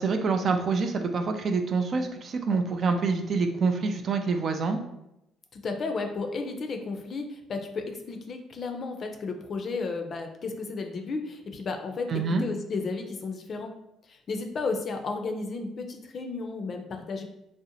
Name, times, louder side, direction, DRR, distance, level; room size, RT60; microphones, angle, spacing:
voice 1, 0.0-4.8 12.1-12.4, right 4 dB, 55° right, 6 dB, 0.3 m, -26 dB
voice 2, 5.5-13.7 14.1-17.2, left 4 dB, 50° left, 5 dB, 0.4 m, -33 dB
2.6 x 2.0 x 2.7 m, 0.87 s
supercardioid pair, 65°, 0 cm